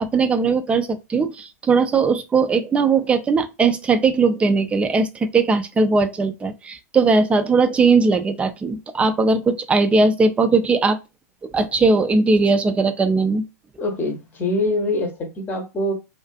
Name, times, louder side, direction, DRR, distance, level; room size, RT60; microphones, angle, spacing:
voice 1, 0.0-5.1 5.3-11.0 11.5-13.4, right 4 dB, 15° right, 0.4 m, -19 dB
voice 2, 13.8-15.9, left 1 dB, 20° left, 0.8 m, -24 dB
2.5 x 2.4 x 2.2 m
hypercardioid pair, 105°, 9 cm